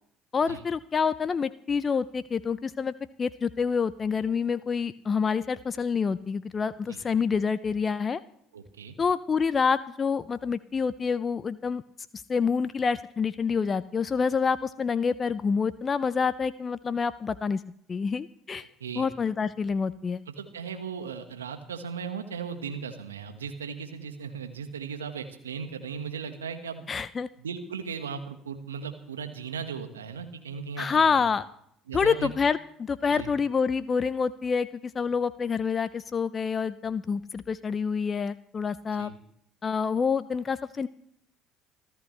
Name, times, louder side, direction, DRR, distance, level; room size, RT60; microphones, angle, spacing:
voice 1, 0.3-8.2 9.0-11.8 12.3-17.6 17.9-18.7 19.0-20.2 26.9-27.3 30.8-31.5 31.9-39.1 39.6-40.9, left 5 dB, 35° left, 15 dB, 0.5 m, -27 dB
voice 2, 8.5-8.9 18.8-19.1 20.4-26.9 27.4-31.2 31.9-32.3 33.1-33.3 39.0-39.2, right 6 dB, 90° right, 7 dB, 1.5 m, -37 dB
25.5 x 14.0 x 3.3 m, 0.69 s
hypercardioid pair, 60°, 0 cm